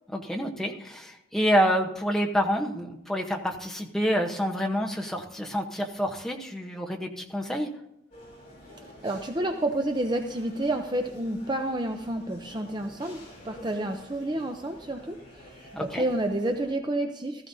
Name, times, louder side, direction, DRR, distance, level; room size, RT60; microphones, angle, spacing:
voice 1, 0.1-7.7 15.7-16.0, equal, ahead, 1 dB, 0.9 m, -28 dB
sound 1, 8.1-16.7, left 1 dB, 35° left, 5.3 m, -49 dB
voice 2, 8.7-17.5, right 1 dB, 25° right, 5 dB, 0.5 m, -30 dB
15.5 x 13.5 x 2.7 m, 0.81 s
head